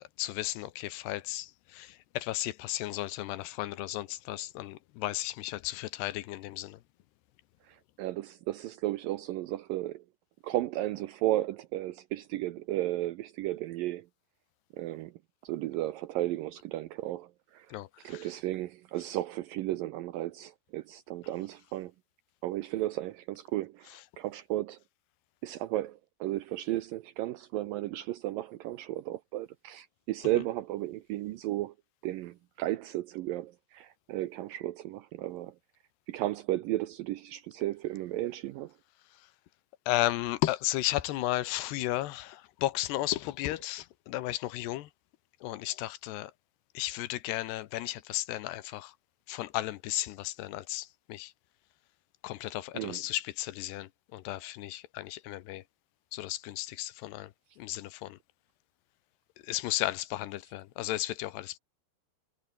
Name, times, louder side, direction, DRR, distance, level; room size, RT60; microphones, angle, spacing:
voice 1, 0.2-1.5 1.8-1.9 2.2-6.8 17.7-17.9 39.9-44.9 45.4-46.3 46.8-48.9 49.3-51.3 52.2-55.6 56.1-57.3 57.6-58.2 59.5-61.6, left 16 dB, 80° left, 3.1 m, -34 dB
voice 2, 7.6-10.0 10.4-14.1 14.7-15.1 15.4-21.9 22.4-24.8 25.4-31.7 32.0-35.6 36.1-38.8 52.7-53.1, right 15 dB, 80° right, 2.1 m, -34 dB
omnidirectional pair, 4.8 m